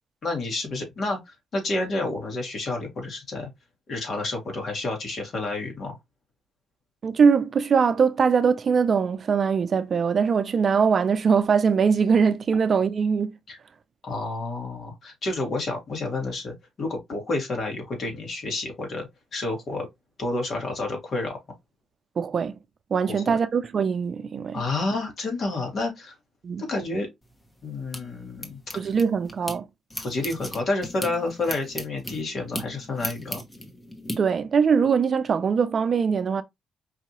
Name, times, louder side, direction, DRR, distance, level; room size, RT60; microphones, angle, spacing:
voice 1, 0.2-3.5 3.9-6.0 13.5-13.6 14.0-19.1 19.3-19.9 20.2-21.4 23.1-23.4 24.5-26.1 26.6-27.1 27.6-28.9 30.0-33.4, left 2 dB, 55° left, 2.0 m, -30 dB
voice 2, 7.0-13.4 22.2-22.5 22.9-24.6 26.4-26.6 28.7-29.7 34.2-36.4, right 6 dB, 45° right, 0.5 m, -22 dB
sound 1, 27.2-29.6 29.9-34.2, left 1 dB, 15° left, 1.1 m, -37 dB
4.8 x 2.7 x 3.0 m
cardioid pair, 90°, 0 cm